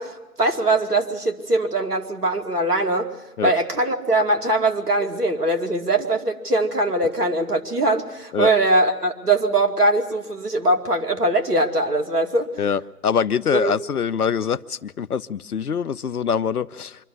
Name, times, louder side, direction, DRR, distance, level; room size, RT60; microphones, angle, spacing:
voice 1, 0.0-3.1 3.4-12.5 13.5-13.7, right 2 dB, 75° right, 5 dB, 2.5 m, -21 dB
voice 2, 12.6-17.0, left 7 dB, 70° left, 17 dB, 0.8 m, -24 dB
25.0 x 12.5 x 9.7 m, 1.1 s
figure-of-eight pair, 150°, 47 cm